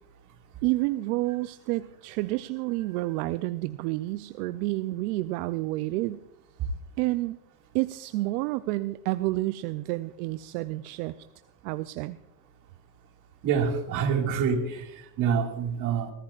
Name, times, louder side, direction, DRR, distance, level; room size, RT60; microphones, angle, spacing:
voice 1, 0.6-6.2 7.0-7.4 7.7-11.1 11.6-12.2, right 19 dB, 70° right, 13 dB, 0.6 m, -29 dB
voice 2, 13.4-16.1, right 6 dB, 40° right, 3 dB, 2.1 m, -27 dB
21.5 x 15.0 x 2.4 m, 0.87 s
supercardioid pair, 140°, 49 cm